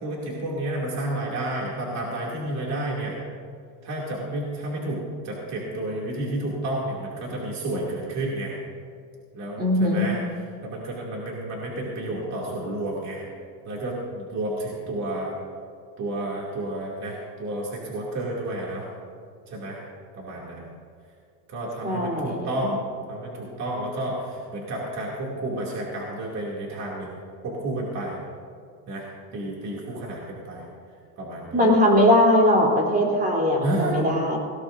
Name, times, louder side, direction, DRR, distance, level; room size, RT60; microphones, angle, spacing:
voice 1, 0.0-3.2 3.8-8.6 9.3-10.2 10.6-13.2 13.7-15.4 16.0-18.9 19.5-19.8 20.1-20.6 21.5-22.8 23.1-27.1 27.4-28.2 28.9-29.0 29.3-30.7 31.2-31.8 33.6-34.0, right 1 dB, 35° right, -4 dB, 2.5 m, -31 dB
voice 2, 9.6-10.1 21.8-22.5 31.5-34.4, left 1 dB, 20° right, -1 dB, 3.3 m, -20 dB
18.5 x 17.5 x 2.6 m, 2.3 s
cardioid pair, 140°, 49 cm